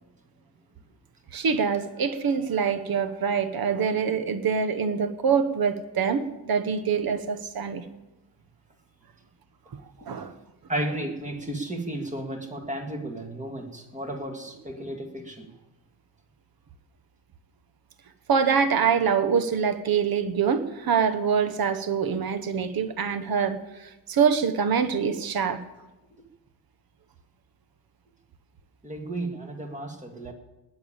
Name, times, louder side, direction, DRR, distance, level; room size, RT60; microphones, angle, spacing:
voice 1, 1.3-7.8 10.0-10.3 18.3-25.6, right 6 dB, 55° right, 10 dB, 1.1 m, -25 dB
voice 2, 10.7-15.5 28.8-30.3, right 1 dB, 15° right, 3 dB, 2.1 m, -33 dB
19.5 x 7.0 x 8.8 m, 1.0 s
wide cardioid pair, 160°, 42 cm